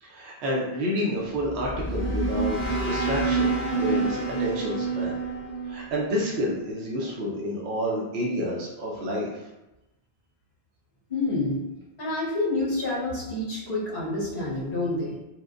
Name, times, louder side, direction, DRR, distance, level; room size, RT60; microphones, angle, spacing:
voice 1, 0.0-5.2 5.7-9.4, equal, 85° right, -3 dB, 0.9 m, -29 dB
sound 1, 1.3-6.6, right 3 dB, 15° left, 0.4 m, -28 dB
voice 2, 11.1-11.6 12.0-15.1, left 2 dB, 60° left, -7 dB, 1.3 m, -28 dB
4.3 x 2.1 x 2.4 m, 0.97 s
omnidirectional pair, 1.1 m